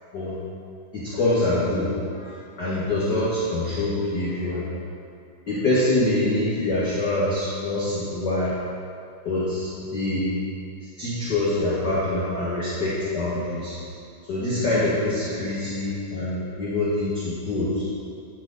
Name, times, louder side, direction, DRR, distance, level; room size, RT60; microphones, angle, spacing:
voice 1, 0.9-1.9 2.6-4.7 5.5-8.5 9.2-10.3 11.0-13.8 14.3-17.8, left 2 dB, 55° left, -9 dB, 1.1 m, -25 dB
9.8 x 6.6 x 3.9 m, 2.4 s
omnidirectional pair, 4.0 m